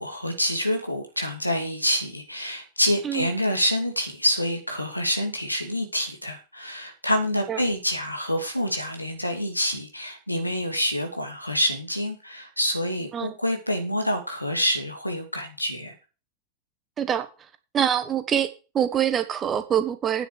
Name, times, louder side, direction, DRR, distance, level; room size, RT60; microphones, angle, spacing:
voice 1, 0.0-15.9, equal, 85° left, 2.5 m, -27 dB
voice 2, 17.7-18.5 18.7-20.3, right 9 dB, 25° right, 1.5 m, -24 dB
9.5 x 7.0 x 6.5 m
figure-of-eight pair, 90°, 0 cm